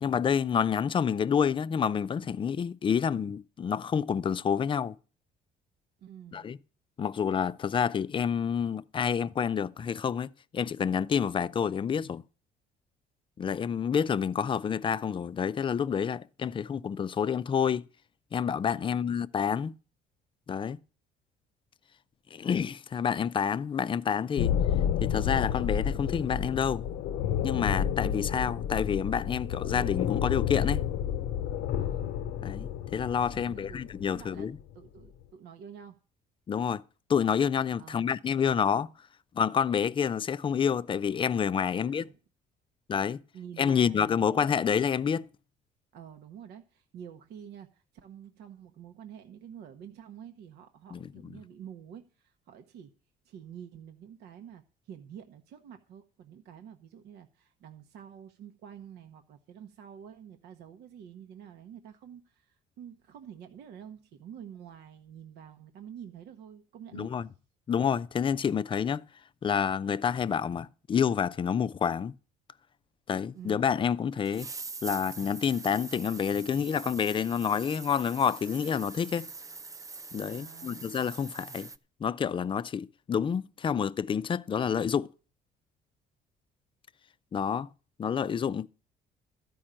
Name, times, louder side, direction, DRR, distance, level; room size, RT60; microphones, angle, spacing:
voice 1, 0.0-4.9 6.3-6.6 7.0-12.2 13.4-17.8 18.3-19.7 20.5-20.8 22.3-24.5 25.0-26.9 27.4-30.8 32.4-34.6 36.5-36.8 37.1-38.9 39.3-42.1 42.9-43.2 43.6-45.3 50.9-51.1 66.9-67.3 67.7-69.0 69.4-72.1 73.1-74.5 74.8-79.3 80.1-81.7 82.0-85.1 87.3-87.7 88.0-88.7, left 7 dB, 30° left, 0.5 m, -28 dB
voice 2, 6.0-6.5 18.8-19.1 31.8-32.1 33.3-36.0 37.8-38.1 41.7-42.2 43.3-44.5 45.9-52.9 53.2-67.1 73.3-73.7 80.2-80.9, right 9 dB, 75° right, 1.0 m, -48 dB
sound 1, 24.4-34.6, left 9 dB, 80° left, 0.7 m, -30 dB
sound 2, 73.5-73.6 74.2-81.8, right 4 dB, 20° right, 0.6 m, -43 dB
13.0 x 5.4 x 8.8 m
cardioid pair, 110°, 17 cm